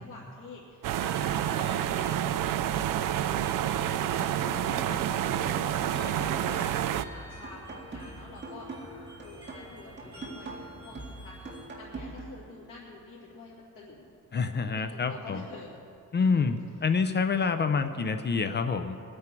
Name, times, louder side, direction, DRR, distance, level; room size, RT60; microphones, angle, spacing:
voice 1, 0.0-3.0 3.3-8.7 9.2-14.1 14.7-15.8 16.2-16.5, left 3 dB, 80° left, -6 dB, 2.6 m, -48 dB
sound 1, 0.8-7.0, right 11 dB, 85° right, 0.5 m, -28 dB
sound 2, 0.9-11.7, right 1 dB, 15° right, 3.6 m, -49 dB
sound 3, 4.4-12.4, right 2 dB, 35° right, 2.0 m, -42 dB
voice 2, 14.3-15.4 16.1-19.0, left 5 dB, 35° left, 8 dB, 0.5 m, -27 dB
23.0 x 9.7 x 4.5 m, 2.5 s
wide cardioid pair, 160°, 32 cm